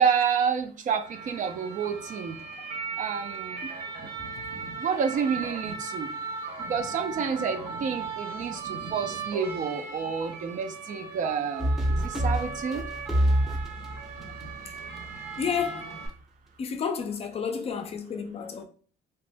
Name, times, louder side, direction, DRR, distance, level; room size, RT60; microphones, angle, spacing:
voice 1, 0.0-2.4 3.0-3.7 4.8-6.1 6.7-12.8, right 6 dB, 50° right, 0.5 m, -29 dB
sound 1, 1.0-16.1, right 4 dB, 85° right, 0.9 m, -38 dB
sound 2, 11.6-15.0, equal, ahead, 0.7 m, -26 dB
voice 2, 15.4-16.0 16.6-18.6, left 6 dB, 35° left, 0.5 m, -31 dB
2.8 x 2.1 x 3.3 m
cardioid pair, 110°, 17 cm